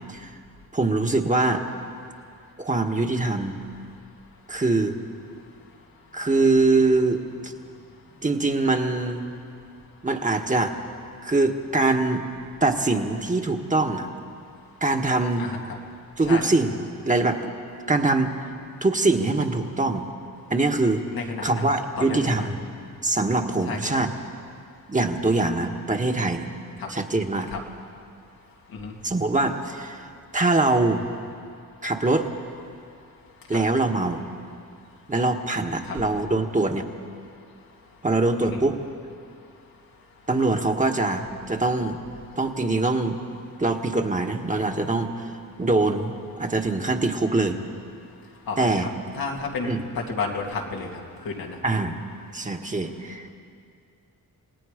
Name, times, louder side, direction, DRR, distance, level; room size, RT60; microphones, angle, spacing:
voice 1, 0.7-1.6 2.6-3.6 4.5-4.9 6.1-7.5 8.2-9.2 10.0-10.7 11.2-12.3 12.6-14.1 14.8-15.5 16.2-16.7 17.0-17.5 17.9-18.5 18.8-20.1 20.5-21.0 21.4-22.6 23.0-24.1 24.9-26.5 26.9-27.5 29.0-31.0 31.8-32.3 33.5-34.2 35.1-36.9 38.0-38.8 40.3-42.0 42.4-43.2 43.6-45.3 45.6-47.6 48.6-48.9 49.6-49.8 51.6-52.0 52.3-53.3, right 2 dB, 20° right, 4 dB, 1.4 m, -23 dB
voice 2, 5.4-5.7 6.1-6.3 7.6-8.2 15.4-15.8 16.3-16.5 21.1-22.6 23.6-23.9 26.8-27.0 27.5-27.6 28.7-29.0 33.1-33.2 33.5-33.6 35.8-36.1 37.9-38.0 38.5-38.6 48.2-48.9 49.1-51.6, left 4 dB, 90° left, 0 dB, 2.4 m, -33 dB
28.5 x 18.0 x 5.1 m, 2.4 s
cardioid pair, 95°, 34 cm